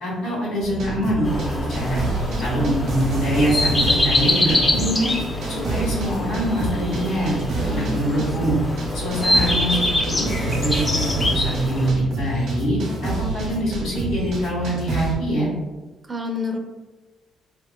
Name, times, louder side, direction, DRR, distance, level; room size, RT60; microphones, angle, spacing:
voice 1, 0.0-2.0 2.4-5.1 5.5-7.4 7.7-8.6 8.9-11.0 11.3-12.8 13.0-15.5, right 1 dB, 85° left, -7 dB, 1.4 m, -24 dB
sound 1, 0.6-15.1, right 2 dB, 70° right, 0.8 m, -28 dB
sound 2, 1.2-11.9, left 1 dB, 30° left, 0.5 m, -25 dB
voice 2, 2.3-2.7 7.6-8.3 16.1-16.6, left 3 dB, 30° right, 3 dB, 0.5 m, -30 dB
2.9 x 2.8 x 2.2 m, 1.2 s
supercardioid pair, 55°, 0 cm